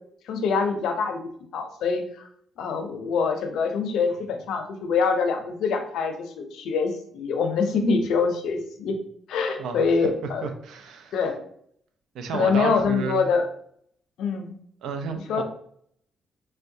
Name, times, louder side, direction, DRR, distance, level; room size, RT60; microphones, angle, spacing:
voice 1, 0.3-1.2 1.5-2.3 2.6-8.9 9.3-10.4 11.1-11.4 12.3-13.5 14.2-14.5 15.3-15.4, left 5 dB, 85° left, 6 dB, 0.5 m, -25 dB
voice 2, 9.6-11.2 12.1-13.3 14.8-15.4, right 5 dB, 85° right, 7 dB, 0.5 m, -32 dB
4.4 x 2.1 x 2.6 m, 0.66 s
cardioid pair, 90°, 0 cm